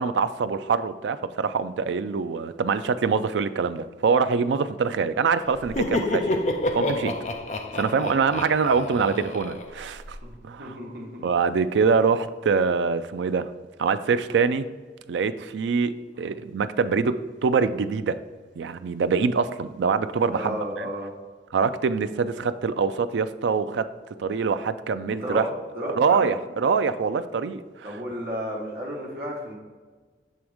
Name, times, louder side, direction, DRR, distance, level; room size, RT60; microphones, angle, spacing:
voice 1, 0.0-6.4 6.7-7.1 7.7-10.2 10.4-10.8 11.2-13.5 13.8-14.6 15.1-18.2 18.6-20.9 21.5-23.9 24.2-25.5 25.9-27.6, right 5 dB, 90° right, 12 dB, 0.4 m, -24 dB
Laughter, 5.5-10.2, left 1 dB, 40° left, 0.5 m, -29 dB
voice 2, 10.6-11.3 16.1-16.3 20.3-21.1 25.1-25.5 25.7-26.3 27.8-29.6, equal, 55° right, -4 dB, 1.4 m, -32 dB
7.5 x 3.5 x 4.9 m, 1.4 s
head